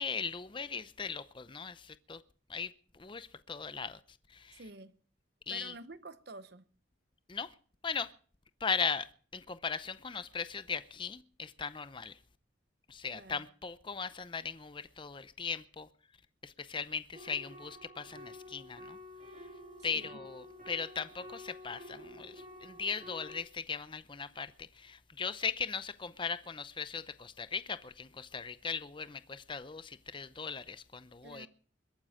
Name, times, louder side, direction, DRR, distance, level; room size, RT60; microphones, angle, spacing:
voice 1, 0.0-2.2 2.5-4.0 4.3-4.6 5.5-5.7 7.3-7.5 7.8-8.1 8.6-12.2 12.9-15.9 16.4-19.0 19.8-31.5, left 5 dB, 25° left, 0.6 m, -38 dB
voice 2, 4.5-4.9 5.5-6.7 13.1-13.5 19.9-20.2 31.2-31.5, right 3 dB, 55° right, 1.0 m, -49 dB
sound 1, 17.1-23.4, left 1 dB, 40° right, 5.0 m, -50 dB
22.0 x 9.4 x 5.0 m
head